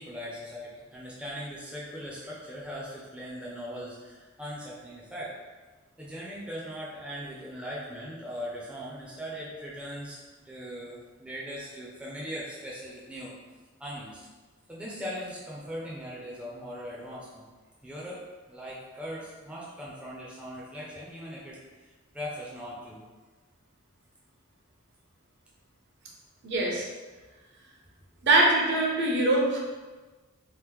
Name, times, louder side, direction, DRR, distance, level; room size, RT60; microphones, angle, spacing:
voice 1, 0.0-5.4 6.0-13.3 13.8-14.2 14.7-17.4 17.8-23.0, equal, 5° right, -6 dB, 0.4 m, -40 dB
voice 2, 26.4-26.9 28.2-29.6, right 2 dB, 50° right, -2 dB, 0.6 m, -23 dB
3.0 x 2.0 x 3.4 m, 1.3 s
head